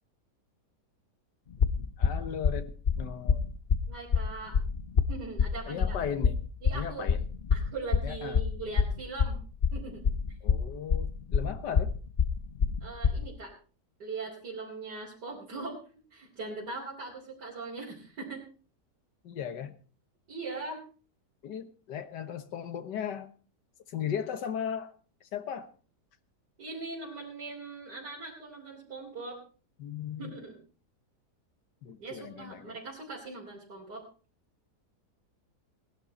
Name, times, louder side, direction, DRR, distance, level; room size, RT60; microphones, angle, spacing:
sound 1, 1.5-13.3, left 6 dB, 45° left, 0.7 m, -26 dB
voice 1, 2.0-2.7 3.0-3.4 5.7-6.4 6.7-7.2 8.0-8.4 10.4-11.9 19.2-19.8 21.4-23.3 23.9-24.9 25.2-25.7 29.8-30.4 31.8-32.8, left 8 dB, 85° left, 10 dB, 1.8 m, -36 dB
voice 2, 3.9-4.6 5.1-6.0 6.6-7.1 7.5-9.4 9.7-10.4 12.8-13.5 14.0-15.8 16.1-18.4 20.3-20.8 26.6-29.4 30.2-30.6 32.0-34.0, right 3 dB, 75° right, -6 dB, 4.0 m, -40 dB
18.5 x 11.5 x 4.2 m, 0.39 s
omnidirectional pair, 1.8 m